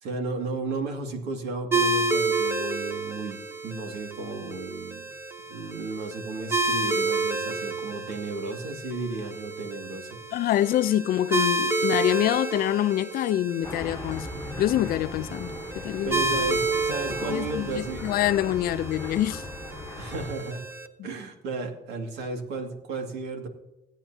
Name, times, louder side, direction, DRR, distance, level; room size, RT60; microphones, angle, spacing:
voice 1, 0.0-5.0 5.5-10.2 16.0-18.1 20.0-20.6 21.0-23.5, right 3 dB, 85° right, 2.2 m, -34 dB
sound 1, 1.7-20.9, right 3 dB, 15° right, 1.0 m, -30 dB
voice 2, 10.3-14.3 14.6-15.5 15.8-16.2 17.3-19.4, left 12 dB, 60° left, 0.5 m, -25 dB
sound 2, 13.6-20.3, left 3 dB, 15° left, 1.2 m, -39 dB
16.5 x 9.1 x 2.8 m
cardioid pair, 110°, 17 cm